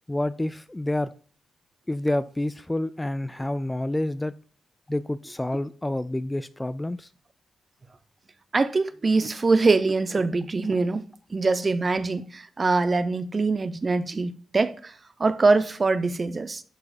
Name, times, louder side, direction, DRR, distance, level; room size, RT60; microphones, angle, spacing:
voice 1, 0.1-1.1 1.9-4.3 4.9-7.1, left 1 dB, 10° left, 0.4 m, -28 dB
voice 2, 8.5-11.0 11.3-14.9 15.2-16.6, right 3 dB, 30° right, 0.6 m, -23 dB
11.0 x 4.8 x 4.1 m
cardioid pair, 110°, 0 cm